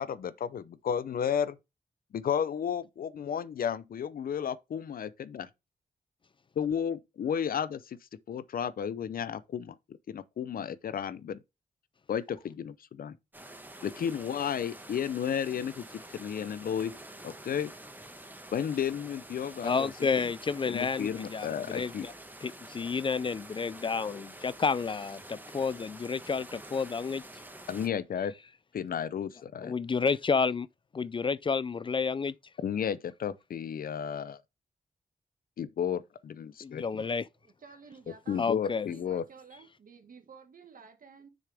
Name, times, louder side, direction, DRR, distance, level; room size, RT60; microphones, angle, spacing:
voice 1, 0.0-1.6 2.1-5.5 6.6-8.0 8.3-11.4 12.1-13.2 13.8-15.8 16.1-17.0 17.2-17.7 18.5-19.9 20.7-22.1 27.7-28.3 28.7-29.7 32.6-34.4 35.6-36.9 38.3-39.2, left 8 dB, 80° left, 0.6 m, -33 dB
sound 1, 13.3-27.9, right 1 dB, 10° right, 1.6 m, -48 dB
voice 2, 19.6-22.1 22.4-27.2 29.6-30.7 30.9-32.3 36.6-37.3 38.4-38.9, left 5 dB, 35° left, 0.3 m, -30 dB
voice 3, 37.4-38.4 38.7-41.3, right 5 dB, 70° right, 1.8 m, -53 dB
6.7 x 6.3 x 3.4 m
wide cardioid pair, 90°, 15 cm